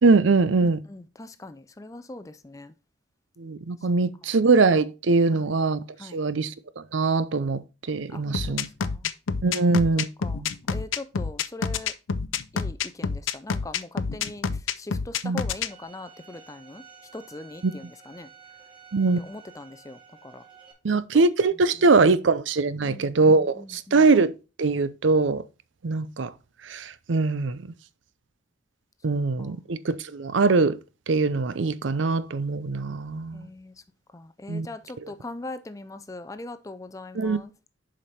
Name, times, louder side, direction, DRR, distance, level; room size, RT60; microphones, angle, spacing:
voice 1, 0.0-0.8 3.4-5.8 6.1-8.7 9.4-10.1 10.4-10.5 15.2-15.4 17.6-17.7 18.9-19.2 20.8-24.3 24.6-25.4 25.8-26.3 26.6-27.6 29.0-30.8 31.1-33.5 34.5-34.7 37.2-37.4, right 3 dB, 75° right, 0.6 m, -22 dB
voice 2, 0.6-2.7 5.3-5.5 6.0-6.2 8.1-9.1 10.2-11.9 12.5-16.8 17.1-18.3 19.2-20.4 21.1-21.2 21.8-21.9 22.8-24.1 29.4-29.6 33.3-33.8 34.1-37.5, left 2 dB, 15° left, 0.4 m, -41 dB
sound 1, 8.3-15.7, left 5 dB, 85° left, 0.5 m, -28 dB
Bowed string instrument, 15.7-20.7, right 6 dB, 25° right, 2.4 m, -51 dB
7.2 x 5.2 x 4.2 m
head